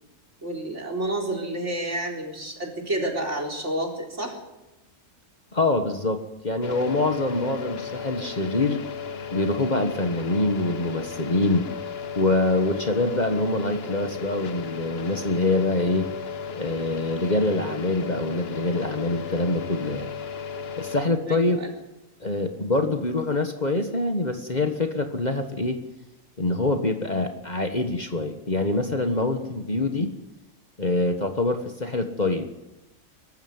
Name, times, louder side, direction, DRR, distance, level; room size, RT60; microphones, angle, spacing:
voice 1, 0.4-4.4 21.3-21.7, right 1 dB, 60° right, 1 dB, 4.5 m, -30 dB
voice 2, 5.5-8.8 9.3-11.7 12.1-16.1 16.6-20.1 20.8-21.6 22.2-25.8 26.4-30.1 30.8-32.5, left 2 dB, 35° left, 6 dB, 1.5 m, -25 dB
sound 1, 6.6-21.0, left 6 dB, 50° left, 1.1 m, -35 dB
22.0 x 14.0 x 9.5 m, 0.98 s
omnidirectional pair, 1.4 m